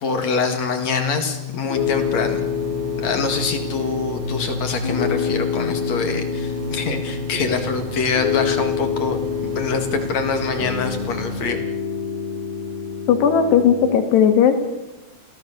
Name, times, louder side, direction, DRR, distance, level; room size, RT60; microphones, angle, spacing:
voice 1, 0.0-2.4 3.0-11.6, left 4 dB, 50° left, 6 dB, 2.9 m, -25 dB
Piano, 0.8-13.9, left 8 dB, 70° left, 1.8 m, -27 dB
sound 1, 1.8-11.5, right 4 dB, 70° right, 3.9 m, -33 dB
voice 2, 13.1-14.6, left 8 dB, 85° left, 7 dB, 4.1 m, -16 dB
28.5 x 16.5 x 6.8 m, 1.1 s
omnidirectional pair, 4.7 m